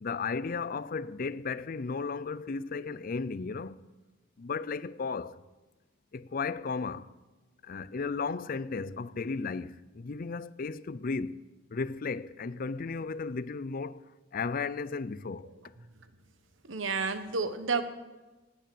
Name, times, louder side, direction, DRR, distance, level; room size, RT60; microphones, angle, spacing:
voice 1, 0.0-3.8 4.4-5.4 6.1-7.1 7.6-11.4 11.7-14.0 14.3-15.5, left 4 dB, 45° left, 0.5 m, -34 dB
voice 2, 16.7-17.8, right 4 dB, 80° right, 1.2 m, -30 dB
18.0 x 9.3 x 6.9 m
head